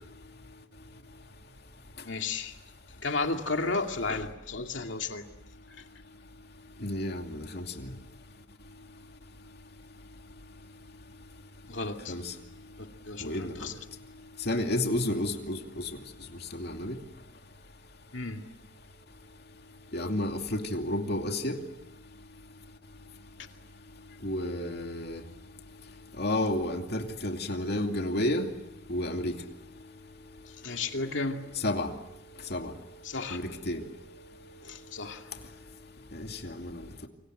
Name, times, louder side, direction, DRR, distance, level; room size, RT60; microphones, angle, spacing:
voice 1, 2.0-2.5 3.0-5.3 5.8-5.9 11.6-12.1 12.8-13.7 18.1-18.4 30.6-31.4 33.0-33.4 34.6-35.3, left 3 dB, 75° left, 2.4 m, -33 dB
voice 2, 6.8-7.9 12.1-12.3 13.2-13.7 14.5-15.9 16.5-17.0 19.9-21.6 24.2-25.2 26.2-28.5 28.9-29.4 31.6-31.9 32.5-32.7 33.3-33.8 36.1-37.1, left 1 dB, 55° left, 2.5 m, -31 dB
28.0 x 25.5 x 7.9 m
head